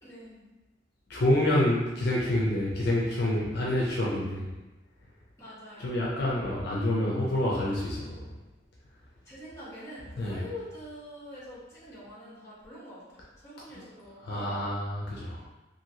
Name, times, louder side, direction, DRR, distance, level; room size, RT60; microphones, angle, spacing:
voice 1, 0.0-0.4 5.4-6.2 9.2-14.5, left 1 dB, 15° left, -9 dB, 1.1 m, -45 dB
voice 2, 1.1-4.5 5.8-8.2 10.2-10.4 14.2-15.4, left 1 dB, 60° left, -5 dB, 0.5 m, -27 dB
2.8 x 2.6 x 2.8 m, 1.1 s
head